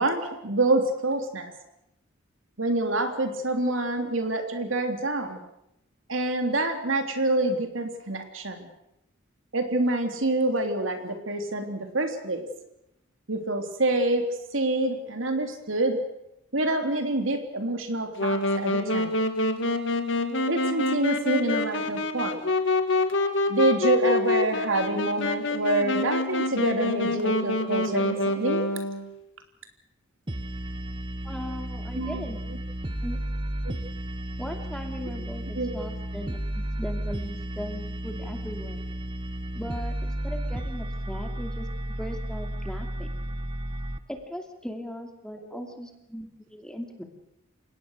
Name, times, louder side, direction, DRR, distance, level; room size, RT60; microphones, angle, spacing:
voice 1, 0.0-1.5 2.6-5.4 6.1-8.7 9.5-12.4 13.3-14.2 14.5-16.0 16.5-19.1 20.5-22.4 23.5-28.6 31.9-32.2 35.0-35.1 35.5-35.7, right 2 dB, 70° right, 5 dB, 3.2 m, -26 dB
Wind instrument woodwind instrument, 18.2-29.1, left 2 dB, 65° left, 2.1 m, -26 dB
sound 1, 30.3-44.0, right 1 dB, 25° right, 1.2 m, -33 dB
voice 2, 31.2-32.4 33.0-33.2 34.4-36.5 36.8-38.8 39.5-41.7 42.0-43.1 44.1-47.0, equal, 5° left, 4 dB, 2.6 m, -38 dB
29.5 x 17.5 x 6.5 m, 0.83 s
head